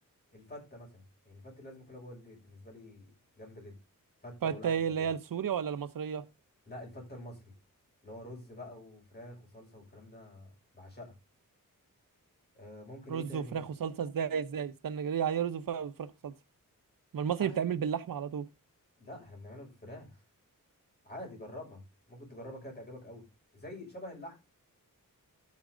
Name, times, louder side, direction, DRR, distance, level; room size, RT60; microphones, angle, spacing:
voice 1, 0.3-3.1 3.3-3.7 4.2-5.1 6.7-7.5 8.0-11.1 12.5-13.6 17.4-17.6 19.0-20.2 21.0-21.8 22.1-23.2 23.5-24.4, left 1 dB, 30° left, 6.5 m, -47 dB
voice 2, 4.4-6.2 13.1-16.3 17.1-18.5, right 7 dB, 85° right, 0.9 m, -32 dB
13.0 x 8.5 x 3.9 m
wide cardioid pair, 150°, 33 cm